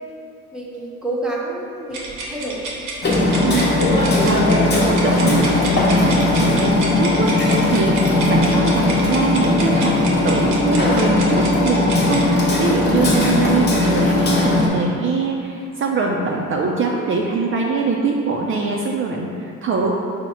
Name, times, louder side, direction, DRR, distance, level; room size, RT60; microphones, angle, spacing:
voice 1, 0.5-2.7, right 2 dB, ahead, -4 dB, 0.6 m, -29 dB
sound 1, 1.9-12.3, right 2 dB, 80° right, 0.8 m, -30 dB
Hammer, 3.0-14.7, left 2 dB, 35° left, 0.9 m, -18 dB
voice 2, 3.4-4.6 4.9-19.9, right 4 dB, 45° right, -1 dB, 0.4 m, -23 dB
4.8 x 2.1 x 4.1 m, 2.4 s
cardioid pair, 90°, 30 cm